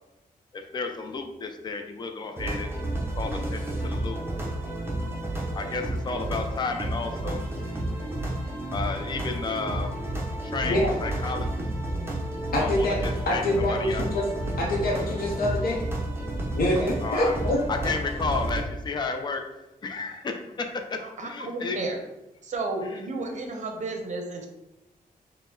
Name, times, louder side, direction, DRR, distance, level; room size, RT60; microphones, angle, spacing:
voice 1, 0.5-2.8 3.1-4.2 5.5-7.5 8.7-10.0 10.4-11.5 12.6-14.1 17.0-17.4 17.7-19.4 19.8-21.9 22.8-23.0, left 4 dB, 30° left, 5 dB, 0.4 m, -32 dB
sound 1, 2.4-18.6, right 1 dB, 15° right, 0.6 m, -31 dB
voice 2, 12.5-13.0 13.3-14.3 14.6-15.8 16.5-17.9, left 1 dB, 85° left, -2 dB, 0.6 m, -25 dB
voice 3, 21.0-22.0 22.4-24.5, right 3 dB, 55° right, 3 dB, 0.6 m, -32 dB
4.5 x 2.1 x 3.6 m, 0.96 s
wide cardioid pair, 165°, 15 cm